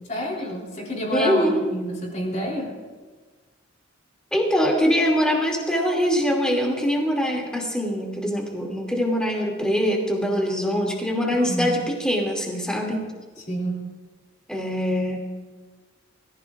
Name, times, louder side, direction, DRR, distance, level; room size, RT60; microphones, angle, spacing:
voice 1, 0.1-2.7 11.3-11.7 13.5-13.9, equal, 35° left, -1 dB, 3.7 m, -28 dB
voice 2, 1.1-1.7 4.3-13.0 14.5-15.4, equal, 5° left, -1 dB, 2.6 m, -23 dB
23.5 x 15.0 x 2.5 m, 1.4 s
head